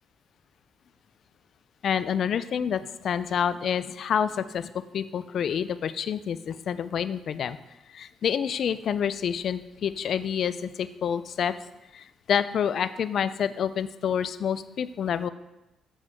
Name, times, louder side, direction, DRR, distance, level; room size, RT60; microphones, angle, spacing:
voice 1, 1.8-7.6 7.9-11.5 11.9-15.3, left 8 dB, 60° left, 14 dB, 0.3 m, -28 dB
6.8 x 5.2 x 3.5 m, 0.97 s
cardioid pair, 90°, 0 cm